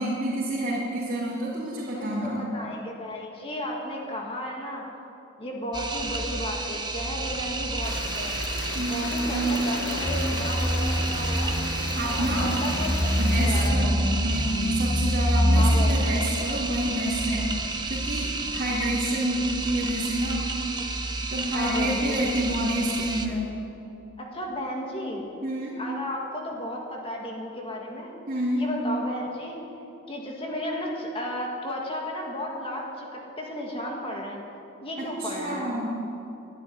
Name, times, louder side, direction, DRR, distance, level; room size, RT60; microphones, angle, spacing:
voice 1, 0.0-2.4 8.7-9.4 11.9-12.5 13.2-20.5 21.2-23.5 25.4-25.8 28.3-28.6 35.0-35.9, right 1 dB, 45° right, -8 dB, 3.1 m, -28 dB
voice 2, 1.9-4.8 5.4-8.4 8.9-11.6 12.0-14.2 15.5-16.2 21.5-22.2 24.2-25.2 25.8-28.1 28.5-29.6 30.1-34.4 34.8-35.8, left 1 dB, 30° left, -1 dB, 1.9 m, -34 dB
sound 1, 5.7-23.3, right 3 dB, 20° right, 1.0 m, -31 dB
sound 2, 7.8-13.7, left 4 dB, 60° left, 1.0 m, -36 dB
sound 3, 10.0-15.9, equal, 10° left, 0.7 m, -25 dB
12.0 x 12.0 x 9.8 m, 2.8 s
head